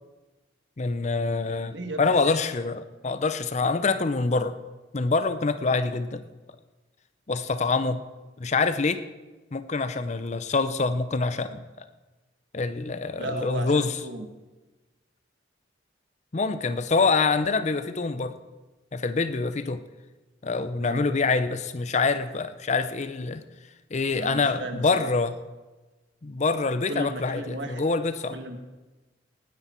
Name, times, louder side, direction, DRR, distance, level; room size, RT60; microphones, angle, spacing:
voice 1, 0.8-4.6 4.9-6.2 7.3-8.0 8.4-9.0 9.5-11.6 12.5-14.0 16.3-18.4 18.9-19.8 20.4-23.4 23.9-25.3 26.2-28.4, left 4 dB, 40° left, 12 dB, 0.6 m, -25 dB
voice 2, 1.6-2.1 13.2-14.3 20.8-21.1 24.2-25.1 26.9-27.8 28.3-28.6, right 1 dB, 70° right, 6 dB, 1.5 m, -35 dB
19.0 x 9.9 x 4.4 m, 1.2 s
head